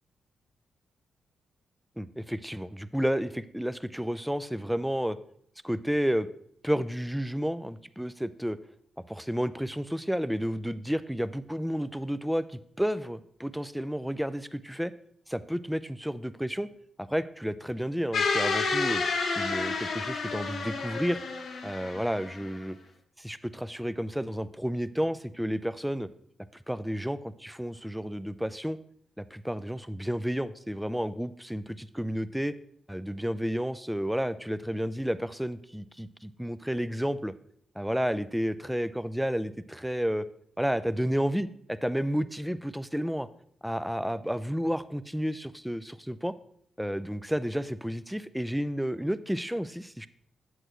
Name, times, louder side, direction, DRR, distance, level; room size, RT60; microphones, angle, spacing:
voice 1, 2.0-5.2 5.6-6.3 6.6-8.6 9.1-14.9 15.3-16.7 17.0-19.0 19.4-21.2 21.6-22.8 23.2-26.1 26.7-28.8 29.2-32.5 32.9-37.3 37.8-40.3 40.6-43.3 43.6-46.3 46.8-50.1, equal, 5° right, 14 dB, 0.5 m, -31 dB
sound 1, 18.1-22.5, left 4 dB, 65° left, 0.9 m, -30 dB
7.9 x 7.6 x 3.1 m, 0.67 s
hypercardioid pair, 45°, 0 cm